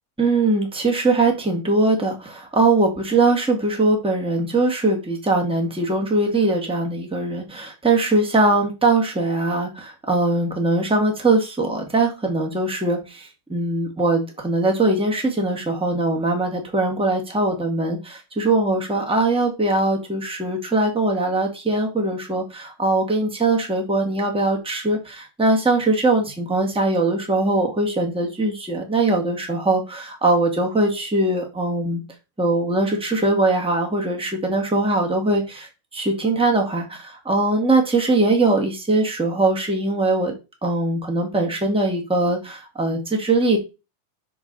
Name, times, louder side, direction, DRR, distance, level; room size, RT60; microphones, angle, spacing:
voice 1, 0.2-32.0 32.4-40.3 40.6-43.6, right 2 dB, ahead, 1 dB, 1.3 m, -21 dB
6.9 x 6.3 x 4.1 m, 0.27 s
omnidirectional pair, 3.7 m